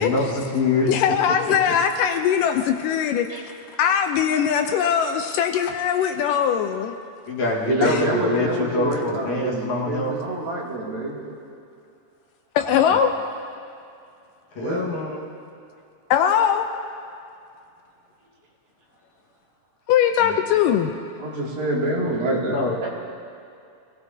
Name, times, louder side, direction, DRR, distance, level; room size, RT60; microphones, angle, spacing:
voice 1, 0.0-0.9 7.3-10.2 12.9-13.0 14.6-15.2 20.2-20.4 22.5-22.9, left 3 dB, 60° left, -3 dB, 2.7 m, -25 dB
voice 2, 0.9-3.5 3.8-7.0 7.8-8.0 12.6-13.1 16.1-16.7 19.9-20.9, left 8 dB, 80° left, 6 dB, 2.1 m, -21 dB
voice 3, 7.7-11.2 14.6-14.9 21.2-22.9, right 2 dB, 75° right, -4 dB, 4.1 m, -26 dB
25.0 x 17.5 x 2.7 m, 2.5 s
omnidirectional pair, 4.1 m